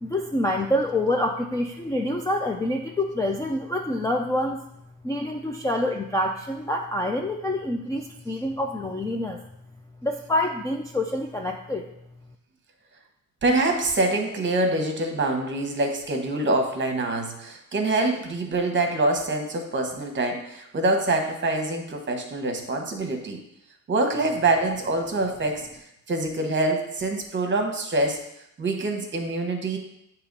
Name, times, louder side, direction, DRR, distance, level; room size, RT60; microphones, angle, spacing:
voice 1, 0.0-4.6 5.0-9.4 10.0-11.9, left 1 dB, 10° left, 1 dB, 0.3 m, -26 dB
voice 2, 13.4-23.4 23.9-25.7 26.1-28.3 28.6-29.8, right 2 dB, 35° right, 4 dB, 1.0 m, -25 dB
8.3 x 2.9 x 5.2 m, 0.80 s
cardioid pair, 155°, 34 cm